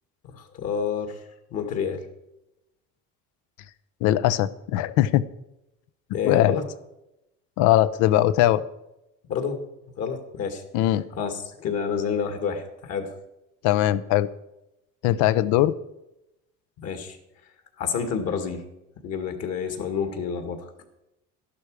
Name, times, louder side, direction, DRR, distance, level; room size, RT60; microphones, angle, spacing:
voice 1, 0.3-1.2 1.5-2.0 6.1-6.6 9.3-9.6 10.0-10.6 11.1-13.1 16.8-17.2 17.8-18.6 19.0-20.6, left 6 dB, 55° left, 6 dB, 2.2 m, -28 dB
voice 2, 4.0-5.2 6.2-6.6 7.6-8.6 10.7-11.0 13.6-14.3 15.0-15.7, left 13 dB, 80° left, 15 dB, 0.8 m, -20 dB
12.5 x 11.5 x 4.9 m, 0.89 s
cardioid pair, 130°, 29 cm